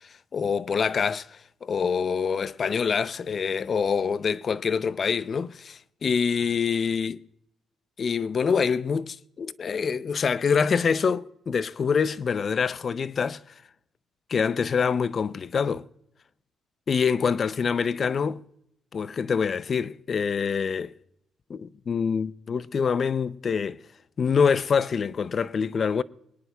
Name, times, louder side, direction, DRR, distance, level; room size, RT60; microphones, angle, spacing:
voice 1, 0.0-7.2 8.0-13.4 14.3-15.9 16.9-18.4 18.9-20.9 21.5-23.8 24.2-26.0, left 6 dB, 45° left, 0.5 m, -25 dB
25.0 x 10.0 x 2.3 m
cardioid pair, 90°, 0 cm